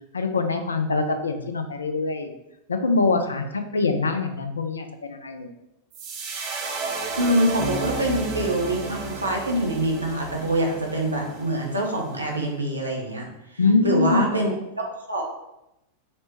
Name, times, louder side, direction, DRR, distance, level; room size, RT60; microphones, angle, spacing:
voice 1, 0.1-2.3 2.7-5.5 13.6-14.2, left 3 dB, 75° left, 7 dB, 0.3 m, -24 dB
sound 1, 5.9-12.2, right 4 dB, 40° right, 0.6 m, -34 dB
voice 2, 7.2-13.3 13.8-14.5 14.8-15.2, right 1 dB, 80° right, 0 dB, 0.6 m, -25 dB
Bass guitar, 7.6-11.1, right 1 dB, 20° left, 0.9 m, -36 dB
4.2 x 2.1 x 2.9 m, 0.90 s
figure-of-eight pair, 90°, 0 cm